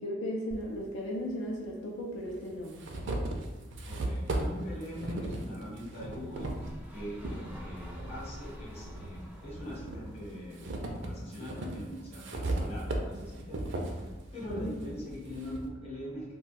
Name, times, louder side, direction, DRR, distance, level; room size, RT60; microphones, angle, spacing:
voice 1, 0.0-2.8 14.6-14.8, equal, 85° left, -2 dB, 0.5 m, -36 dB
sound 1, 0.5-0.6 1.7-1.8 2.3-7.4 7.9-9.1 9.5-15.7, right 1 dB, 70° right, 0.4 m, -37 dB
voice 2, 3.9-6.5 6.9-10.6 10.9-16.3, equal, 35° left, -5 dB, 1.0 m, -42 dB
sound 2, 6.0-12.1, equal, 10° right, 0.4 m, -48 dB
2.4 x 2.3 x 4.0 m, 1.2 s
head